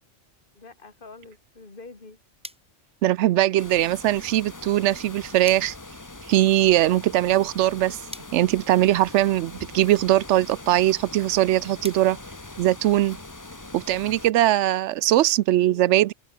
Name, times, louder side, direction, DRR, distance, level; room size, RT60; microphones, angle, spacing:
voice 1, 0.5-2.2 15.6-16.1, left 3 dB, 45° left, 2.8 m, -46 dB
sound 1, 2.4-13.2, equal, 5° right, 7.9 m, -50 dB
voice 2, 3.0-5.7 6.3-8.0 8.3-12.2 12.6-13.2 13.7-16.1, right 14 dB, 75° right, 0.8 m, -21 dB
sound 2, 3.6-14.3, left 2 dB, 15° left, 1.1 m, -42 dB
omnidirectional pair, 1.3 m